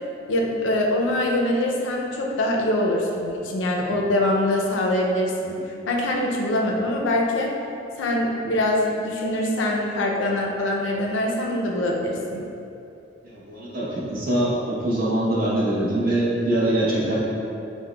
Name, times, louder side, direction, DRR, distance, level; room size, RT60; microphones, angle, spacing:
voice 1, 0.3-5.6 5.9-7.6 8.0-12.4, left 1 dB, 80° left, 0 dB, 0.4 m, -23 dB
voice 2, 13.2-17.2, right 1 dB, 50° right, -7 dB, 0.8 m, -23 dB
5.3 x 2.0 x 2.2 m, 2.7 s
head